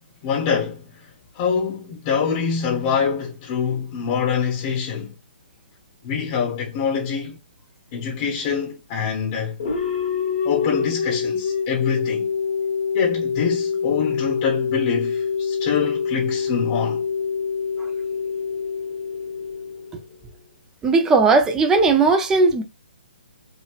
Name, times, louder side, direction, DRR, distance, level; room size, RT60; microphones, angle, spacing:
voice 1, 0.2-1.1 1.3-5.1 6.0-7.4 7.9-9.6 10.4-12.3 12.9-17.0, left 6 dB, 30° left, 1.0 m, -25 dB
sound 1, 9.6-20.3, left 6 dB, 50° left, 1.1 m, -25 dB
voice 2, 20.8-22.6, right 3 dB, 10° right, 0.5 m, -17 dB
3.1 x 2.8 x 2.4 m
hypercardioid pair, 145°, 5 cm